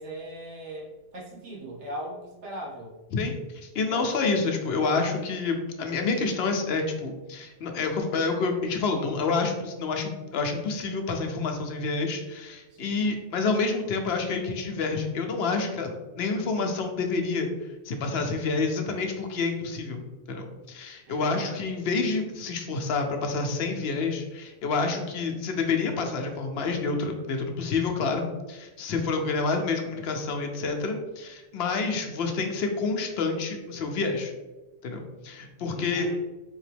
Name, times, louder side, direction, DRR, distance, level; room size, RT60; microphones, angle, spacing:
voice 1, 0.0-3.0 3.8-4.1 12.7-13.0 21.1-21.5 35.7-36.2, right 1 dB, 80° right, -3 dB, 1.3 m, -39 dB
voice 2, 3.1-17.5 17.9-20.0 20.3-34.3 34.8-36.2, left 4 dB, 70° left, 4 dB, 0.8 m, -28 dB
4.0 x 2.9 x 3.3 m, 1.2 s
omnidirectional pair, 1.2 m